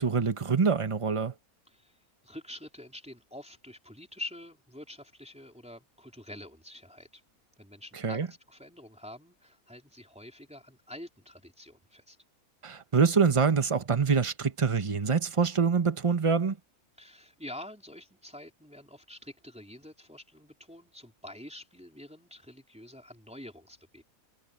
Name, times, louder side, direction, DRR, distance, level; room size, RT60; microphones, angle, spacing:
voice 1, 0.0-1.3 8.0-8.3 12.6-16.6, right 5 dB, 25° right, 1.1 m, -25 dB
voice 2, 1.7-2.0 2.2-7.2 7.6-12.2 17.0-24.0, left 1 dB, 5° right, 3.8 m, -46 dB
omnidirectional pair, 1.6 m